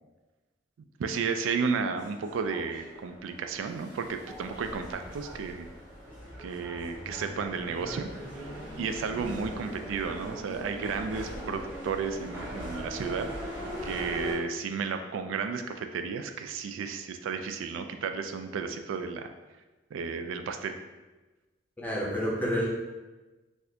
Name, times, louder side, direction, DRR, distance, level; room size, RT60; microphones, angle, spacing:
voice 1, 1.0-5.7 6.4-8.1 8.4-8.5 8.8-13.3 13.8-19.3 19.9-20.8, right 5 dB, 90° right, 7 dB, 0.3 m, -33 dB
sound 1, 2.0-14.3, equal, 10° right, 1.3 m, -40 dB
voice 2, 21.8-22.7, equal, 10° left, -4 dB, 0.6 m, -29 dB
4.1 x 2.4 x 2.7 m, 1.2 s
head